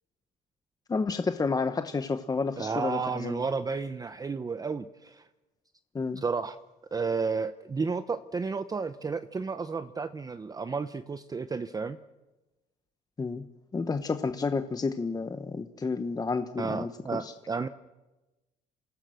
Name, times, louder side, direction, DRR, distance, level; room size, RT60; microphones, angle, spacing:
voice 1, 0.9-3.4 5.9-6.2 13.2-13.4 13.7-17.3, left 4 dB, 20° left, 8 dB, 1.0 m, -30 dB
voice 2, 2.6-5.3 6.2-6.6 6.9-12.0 16.6-17.7, right 4 dB, 20° right, 12 dB, 0.7 m, -32 dB
27.5 x 16.5 x 6.4 m, 1.1 s
cardioid pair, 110°, 17 cm